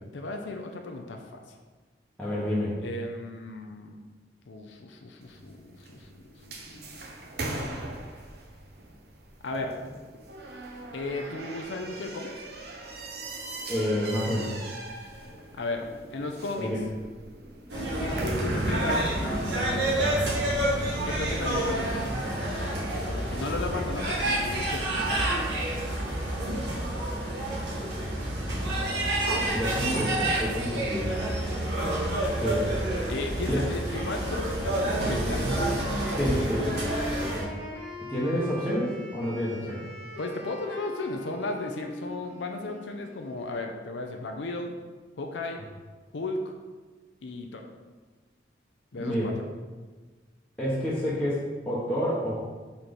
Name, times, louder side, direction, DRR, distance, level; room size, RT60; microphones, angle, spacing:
voice 1, 0.1-1.4 2.8-3.9 4.5-7.0 9.4-9.7 10.9-12.4 15.5-16.7 18.0-19.9 21.0-22.1 22.9-25.4 32.1-36.1 40.2-44.8 45.2-45.6 46.1-46.5 47.2-47.6 48.9-49.3, left 2 dB, 85° left, 3 dB, 0.6 m, -35 dB
voice 2, 2.2-2.7 13.7-14.5 16.6-16.8 23.4-23.5 29.5-31.1 32.4-32.6 36.2-36.6 38.1-39.8 48.9-49.3 50.6-52.4, equal, 5° left, -9 dB, 1.0 m, -28 dB
sound 1, 5.2-20.6, right 1 dB, 60° right, 0.7 m, -39 dB
sound 2, 17.7-37.4, right 1 dB, 75° right, 1.5 m, -28 dB
Wind instrument woodwind instrument, 35.8-43.6, left 1 dB, 30° right, 1.1 m, -41 dB
4.5 x 4.2 x 5.1 m, 1.3 s
head